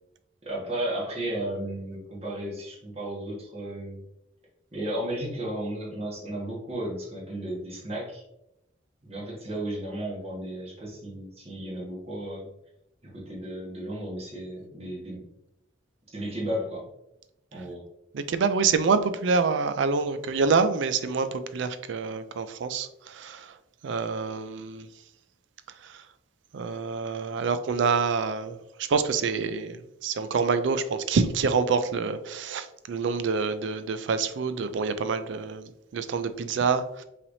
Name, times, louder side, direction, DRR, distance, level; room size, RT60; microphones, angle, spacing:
voice 1, 0.4-4.0 4.7-8.2 9.0-12.5 13.1-15.2 16.1-16.9 17.5-17.8, right 1 dB, 35° right, -4 dB, 1.4 m, -34 dB
voice 2, 18.1-23.5 23.8-24.9 25.8-26.0 26.5-37.0, right 5 dB, 75° right, 11 dB, 0.4 m, -27 dB
5.6 x 3.3 x 2.6 m, 0.86 s
head